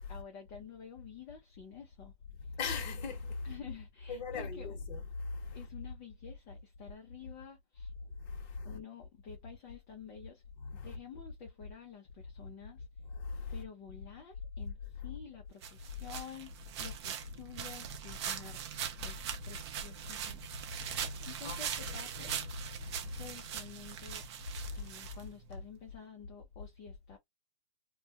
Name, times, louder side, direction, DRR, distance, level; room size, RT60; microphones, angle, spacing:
voice 1, 0.1-2.1 2.4-2.6 3.4-4.8 5.5-7.9 8.6-10.4 10.8-12.9 13.5-20.4 21.2-22.3 23.2-24.2 24.7-27.2, left 7 dB, 25° left, 0.5 m, -50 dB
voice 2, 2.5-3.5 4.1-5.6 8.2-8.8 10.6-10.9 13.1-13.6 20.7-22.5 22.8-23.2 24.6-24.9, left 4 dB, 45° left, 1.0 m, -40 dB
sound 1, 15.6-25.6, right 9 dB, 30° right, 0.3 m, -41 dB
2.3 x 2.1 x 2.7 m
hypercardioid pair, 135°, 32 cm